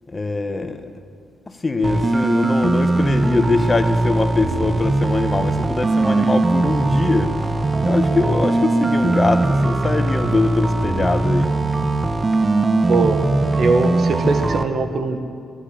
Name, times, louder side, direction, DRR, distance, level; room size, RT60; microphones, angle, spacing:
voice 1, 0.1-0.9 1.5-7.5 7.8-11.5, left 3 dB, 30° left, 8 dB, 1.2 m, -22 dB
sound 1, 1.8-14.6, right 2 dB, 30° right, 0.9 m, -20 dB
voice 2, 12.9-15.2, right 3 dB, 65° right, 6 dB, 1.5 m, -21 dB
12.0 x 11.5 x 8.8 m, 2.2 s
supercardioid pair, 55°, 0 cm